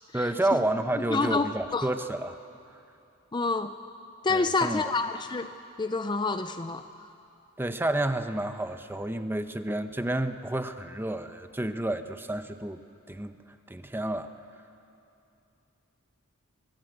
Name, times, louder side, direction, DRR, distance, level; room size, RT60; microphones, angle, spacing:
voice 1, 0.1-2.4 4.3-4.8 7.6-12.8 13.1-13.4 13.7-14.3, right 1 dB, 10° right, 9 dB, 0.8 m, -30 dB
voice 2, 1.1-1.9 3.3-3.8 4.2-5.5 5.8-7.1, left 3 dB, 20° left, 9 dB, 0.5 m, -28 dB
24.5 x 18.0 x 8.0 m, 2.7 s
head